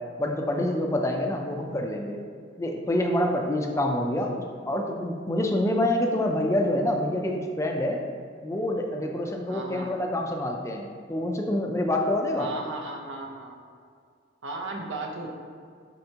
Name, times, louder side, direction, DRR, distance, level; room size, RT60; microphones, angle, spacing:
voice 1, 0.2-2.2 2.6-4.3 4.7-8.0 8.4-12.5, left 1 dB, 15° left, 2 dB, 0.4 m, -26 dB
voice 2, 9.5-9.9 12.3-13.6 14.4-15.3, right 2 dB, 75° right, 1 dB, 0.8 m, -35 dB
7.7 x 4.5 x 2.8 m, 2.1 s
head